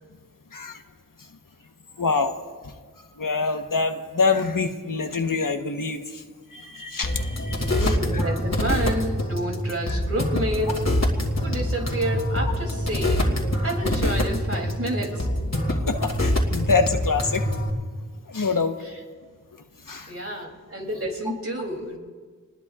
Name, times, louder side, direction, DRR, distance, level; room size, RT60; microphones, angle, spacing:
voice 1, 2.0-2.4 3.2-6.2 6.5-8.2 9.9-10.0 15.7-17.4 18.3-18.7 19.9-20.1, left 4 dB, 80° left, 5 dB, 1.2 m, -26 dB
sound 1, 7.0-17.7, left 1 dB, 55° left, 2.5 m, -25 dB
voice 2, 7.5-10.9 11.4-15.3 20.1-22.0, right 1 dB, 45° right, 0 dB, 3.1 m, -29 dB
28.5 x 20.5 x 2.5 m, 1.5 s
wide cardioid pair, 60°, 32 cm